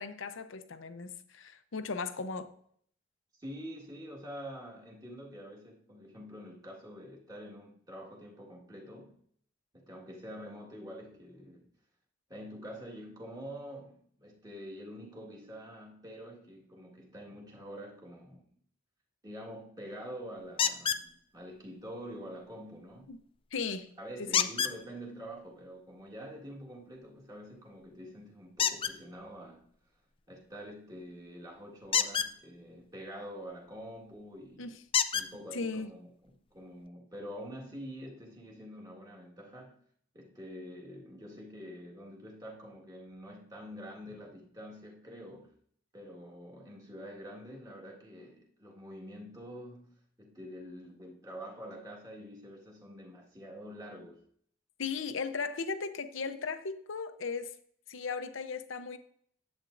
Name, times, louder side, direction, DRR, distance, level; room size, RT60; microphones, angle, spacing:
voice 1, 0.0-2.5 23.1-23.2 23.5-23.9 24.2-24.5 34.6-34.8 35.5-35.9 54.8-57.6 57.9-59.0, left 4 dB, 70° left, 0.7 m, -37 dB
voice 2, 3.4-9.2 9.7-11.7 12.3-18.4 19.2-23.2 24.0-29.7 30.3-34.7 35.1-39.8 40.1-45.6 45.9-54.2, equal, 20° right, 1.7 m, -46 dB
sound 1, 20.6-21.0 24.3-24.8 28.6-28.9 31.8-32.3 34.0-34.1 34.9-35.3 36.3-36.4 36.9-37.0, left 8 dB, 25° left, 0.3 m, -28 dB
10.5 x 8.1 x 2.6 m
head